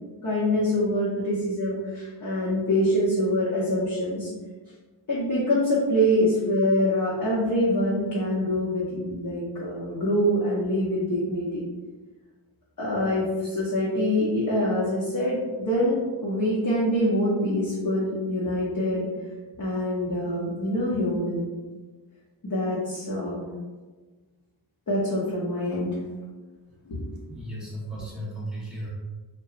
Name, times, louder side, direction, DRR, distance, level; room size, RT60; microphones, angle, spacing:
voice 1, 0.2-4.3 5.1-11.6 12.8-19.1 19.6-21.5 22.4-23.4 24.9-25.9 26.9-27.0, equal, 45° left, -7 dB, 0.7 m, -25 dB
voice 2, 27.3-28.9, right 1 dB, ahead, -7 dB, 0.9 m, -35 dB
2.8 x 2.1 x 2.3 m, 1.3 s
wide cardioid pair, 60°, 46 cm